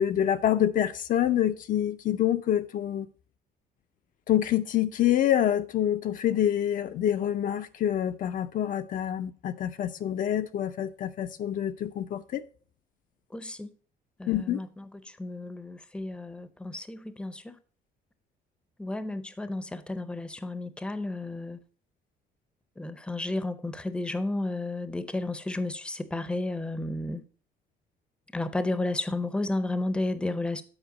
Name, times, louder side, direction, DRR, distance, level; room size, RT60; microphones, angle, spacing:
voice 1, 0.0-3.1 4.3-12.4 14.3-14.6, left 11 dB, 50° left, 0.5 m, -26 dB
voice 2, 13.3-13.7 14.2-17.5 18.8-21.6 22.8-27.2 28.3-30.6, left 2 dB, 5° left, 0.6 m, -32 dB
7.9 x 4.5 x 5.0 m
cardioid pair, 110°, 17 cm